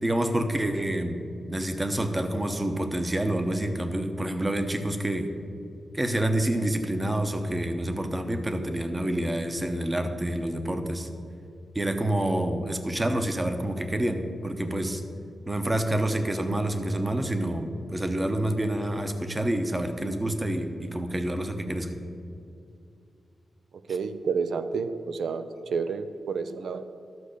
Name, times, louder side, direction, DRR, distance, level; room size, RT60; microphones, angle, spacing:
voice 1, 0.0-1.2 1.5-5.3 5.9-11.1 11.7-15.0 15.5-22.0, right 1 dB, 15° right, 7 dB, 0.8 m, -28 dB
voice 2, 23.9-25.5 25.7-26.9, right 5 dB, 85° right, 10 dB, 0.5 m, -29 dB
12.5 x 6.5 x 6.5 m, 2.6 s
wide cardioid pair, 150°, 0 cm